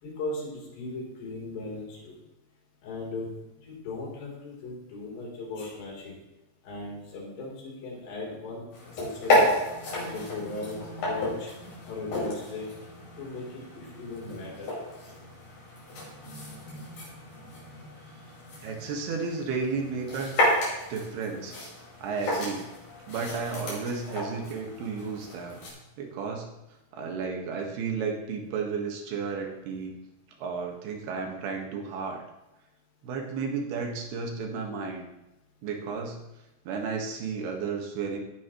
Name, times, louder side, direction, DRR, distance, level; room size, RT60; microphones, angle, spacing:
voice 1, 0.0-2.1 2.8-3.3 3.6-6.2 6.6-8.6 9.0-9.4 10.1-10.8 11.0-11.5 11.8-12.7 13.2-14.7, left 2 dB, 70° left, -4 dB, 5.7 m, -37 dB
sound 1, 8.7-25.7, left 1 dB, 55° left, 6.7 m, -32 dB
voice 2, 18.6-20.4 20.9-21.6 22.0-22.7 23.1-25.6 26.0-26.5 26.9-30.0 30.4-32.2 33.0-35.0 35.6-36.2 36.7-38.2, right 5 dB, 70° right, 2 dB, 3.4 m, -33 dB
17.0 x 10.5 x 3.1 m, 0.98 s
omnidirectional pair, 5.0 m